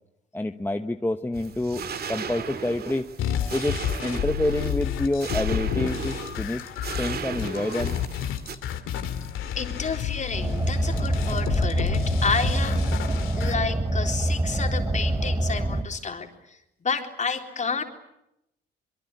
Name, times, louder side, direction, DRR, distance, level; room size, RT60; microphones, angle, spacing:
voice 1, 0.3-6.7 7.0-8.0, left 1 dB, 10° left, 7 dB, 1.1 m, -28 dB
sound 1, 1.3-8.6, right 6 dB, 50° right, 2.2 m, -36 dB
sound 2, 3.2-13.5, left 9 dB, 85° left, 2.6 m, -30 dB
voice 2, 9.6-17.8, left 5 dB, 35° left, 4 dB, 3.9 m, -30 dB
Car, 10.3-15.8, right 1 dB, 15° right, 3.0 m, -25 dB
24.0 x 23.5 x 9.6 m, 0.84 s
cardioid pair, 90°, 20 cm